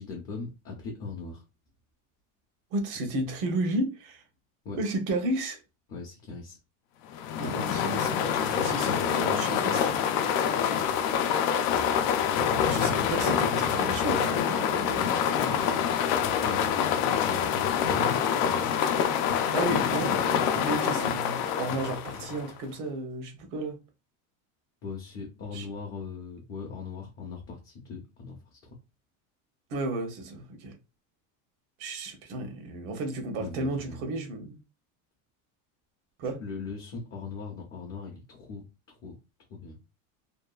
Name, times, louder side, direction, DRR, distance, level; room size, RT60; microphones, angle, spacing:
voice 1, 0.0-1.4 4.6-4.8 5.9-6.6 8.8-9.8 10.5-11.0 14.9-18.7 21.7-21.8 22.1-22.3 24.8-28.8 33.4-34.1 36.2-39.1 39.5-39.8, left 4 dB, 35° left, 0.6 m, -40 dB
voice 2, 2.7-4.2 4.8-5.6 7.4-10.0 12.6-15.3 19.5-23.8 25.5-25.7 29.7-30.7 31.8-34.6 36.2-36.4, right 2 dB, 70° right, 0.9 m, -33 dB
sound 1, 7.1-22.6, left 8 dB, 75° left, 0.6 m, -26 dB
2.7 x 2.2 x 2.3 m
cardioid pair, 165°, 43 cm